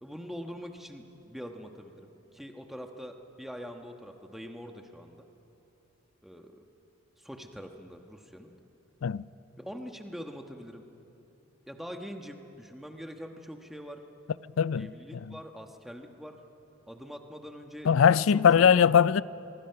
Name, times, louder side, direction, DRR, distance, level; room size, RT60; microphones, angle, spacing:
voice 1, 0.0-5.3 6.2-6.6 7.2-8.5 9.6-10.8 11.7-14.0 14.8-16.4 16.9-17.9 18.3-18.7, equal, ahead, 1.2 m, -43 dB
voice 2, 14.6-15.4 17.8-19.2, left 7 dB, 80° left, 0.4 m, -21 dB
24.0 x 23.5 x 5.8 m
head